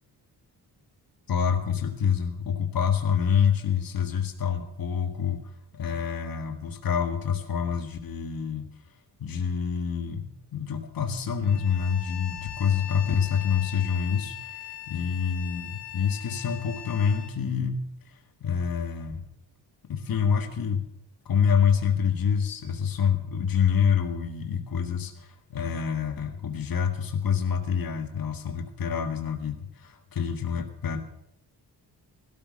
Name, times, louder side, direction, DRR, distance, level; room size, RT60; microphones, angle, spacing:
voice 1, 1.3-5.4 5.7-8.7 9.2-10.3 10.5-19.2 19.9-20.9 21.3-31.0, left 7 dB, 55° left, 6 dB, 1.7 m, -27 dB
Bowed string instrument, 11.4-17.3, left 12 dB, 90° left, 4.4 m, -40 dB
17.0 x 13.0 x 6.4 m, 0.75 s
wide cardioid pair, 165°, 41 cm